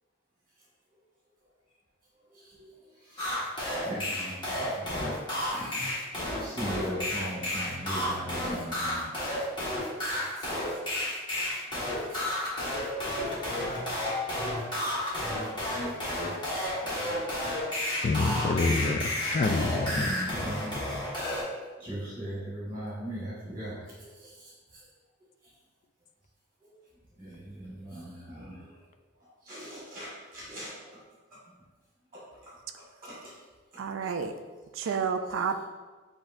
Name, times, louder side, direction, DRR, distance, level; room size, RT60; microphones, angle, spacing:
voice 1, 2.3-3.5 3.7-6.1 6.4-9.1 10.4-10.6 11.0-11.1 11.7-12.4 14.7-14.8 20.0-20.8 21.8-24.9 26.6-26.7 27.2-28.8 29.2-31.0 32.1-33.3 33.7-34.4 34.8-34.9, equal, 25° right, -7 dB, 1.2 m, -40 dB
sound 1, 3.2-21.4, left 1 dB, 25° left, 1.3 m, -31 dB
voice 2, 18.0-20.1, left 3 dB, 40° left, 7 dB, 0.3 m, -27 dB
voice 3, 33.8-34.3 34.7-35.6, right 6 dB, 75° right, 7 dB, 0.4 m, -30 dB
7.8 x 2.7 x 2.5 m, 1.3 s
head